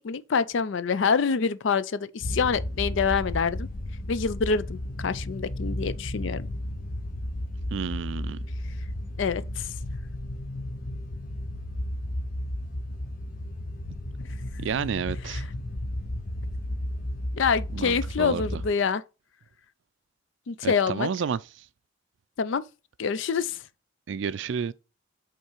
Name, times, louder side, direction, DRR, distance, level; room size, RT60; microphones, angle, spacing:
voice 1, 0.0-3.7 4.1-6.5 9.2-9.7 15.3-15.4 17.3-19.0 20.5-21.1 22.4-22.6 23.0-23.6, left 5 dB, 60° left, 0.4 m, -26 dB
sound 1, 2.2-18.7, left 1 dB, 40° left, 0.8 m, -33 dB
voice 2, 7.7-8.5 14.6-15.4 17.7-18.6 20.6-21.4 24.1-24.7, right 6 dB, 60° right, 0.3 m, -30 dB
5.5 x 3.8 x 4.5 m
head